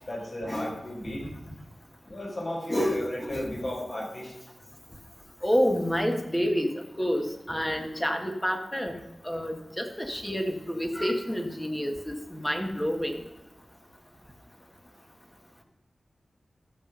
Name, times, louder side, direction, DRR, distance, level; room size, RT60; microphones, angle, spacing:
voice 1, 0.0-1.2 2.0-4.5, left 1 dB, 45° left, -3 dB, 5.2 m, -35 dB
voice 2, 2.7-3.7 5.4-6.7 7.0-9.0 9.2-13.1, equal, 10° left, 4 dB, 1.7 m, -28 dB
13.5 x 7.3 x 5.4 m, 0.97 s
wide cardioid pair, 85°, 0 cm